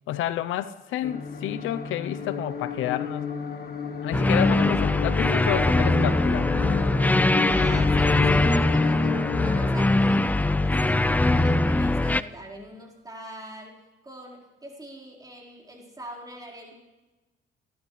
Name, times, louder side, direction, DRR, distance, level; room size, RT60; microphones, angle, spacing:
voice 1, 0.1-3.4 4.0-6.5, left 12 dB, 85° left, 13 dB, 0.7 m, -30 dB
sound 1, 1.0-9.7, left 6 dB, 50° left, 1.3 m, -31 dB
sound 2, 4.1-12.2, left 2 dB, 10° left, 0.4 m, -22 dB
voice 2, 7.4-16.7, right 1 dB, 20° right, -2 dB, 4.3 m, -43 dB
28.0 x 12.5 x 3.2 m, 1.1 s
cardioid pair, 90°, 20 cm